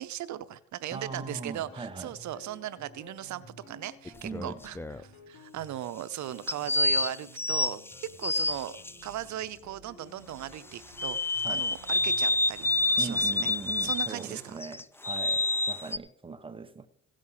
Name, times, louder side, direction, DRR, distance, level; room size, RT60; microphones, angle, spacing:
voice 1, 0.0-4.8 5.0-7.8 8.2-8.8 9.0-11.2 11.5-12.7 13.0-13.5 13.8-14.6, right 12 dB, 70° right, 0.7 m, -38 dB
voice 2, 0.9-2.1 4.2-4.6 11.4-11.7 13.0-16.9, right 4 dB, 20° right, 1.1 m, -40 dB
sound 1, 1.1-14.8, left 1 dB, 85° left, 3.6 m, -54 dB
sound 2, 4.1-5.0 6.5-8.9 11.0-14.2 14.6-16.0, left 2 dB, 10° left, 0.4 m, -28 dB
16.5 x 6.3 x 5.6 m
cardioid pair, 90°, 30 cm